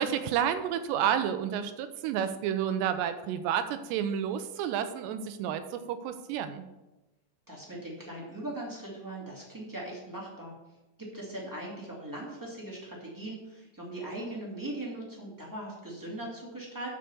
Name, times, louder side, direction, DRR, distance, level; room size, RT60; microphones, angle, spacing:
voice 1, 0.0-6.7, right 9 dB, 80° right, 10 dB, 2.8 m, -30 dB
voice 2, 7.5-10.5 11.0-16.9, right 1 dB, 10° right, -4 dB, 1.0 m, -40 dB
12.0 x 4.9 x 6.9 m, 1.0 s
omnidirectional pair, 5.1 m